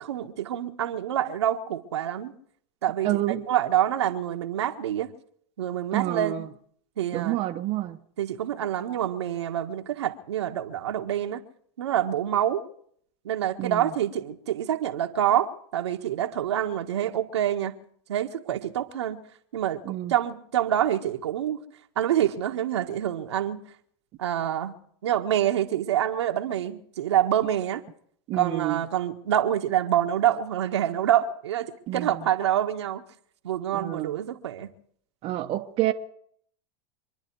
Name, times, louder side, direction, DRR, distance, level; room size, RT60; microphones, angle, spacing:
voice 1, 0.0-2.3 2.8-5.1 5.6-6.5 7.0-7.4 8.2-11.4 11.8-12.6 13.2-17.7 18.1-19.2 19.5-19.8 20.1-21.6 21.9-23.6 24.2-24.7 25.0-27.8 28.3-33.0 33.4-34.7, right 11 dB, 80° right, 1.5 m, -26 dB
voice 2, 3.0-3.4 5.9-6.5 7.1-8.0 13.6-13.9 19.9-20.1 28.3-28.8 31.9-32.2 33.7-34.2 35.2-35.9, right 15 dB, 45° right, 1.1 m, -28 dB
26.0 x 10.5 x 4.7 m
hypercardioid pair, 100°, 14 cm